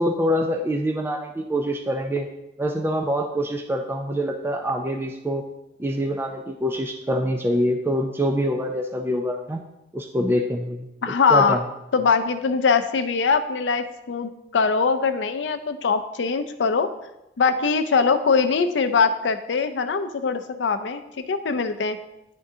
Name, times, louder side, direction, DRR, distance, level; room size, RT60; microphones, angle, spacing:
voice 1, 0.0-2.3 2.6-5.4 5.8-9.6 9.9-10.9 11.3-11.6, equal, 15° right, 2 dB, 0.3 m, -25 dB
voice 2, 11.0-11.6 11.9-16.9 17.4-21.0 21.3-22.0, left 5 dB, 90° left, 10 dB, 0.5 m, -22 dB
10.5 x 3.6 x 2.7 m, 0.91 s
head